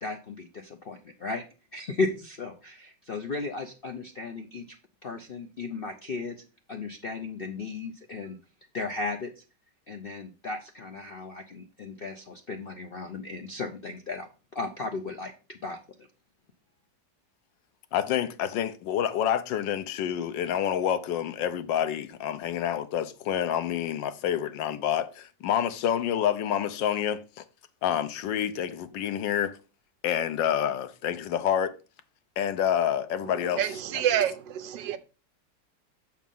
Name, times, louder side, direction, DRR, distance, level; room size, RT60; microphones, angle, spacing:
voice 1, 0.0-1.4 1.7-4.8 5.0-6.4 6.7-8.4 8.7-9.4 9.9-15.8, left 3 dB, 70° left, 0.5 m, -35 dB
voice 2, 17.9-27.4 27.8-29.6 30.0-31.7 32.4-33.6, left 9 dB, 90° left, 1.4 m, -28 dB
voice 3, 33.2-35.0, right 10 dB, 85° right, 1.4 m, -28 dB
7.3 x 4.6 x 5.3 m
omnidirectional pair, 1.9 m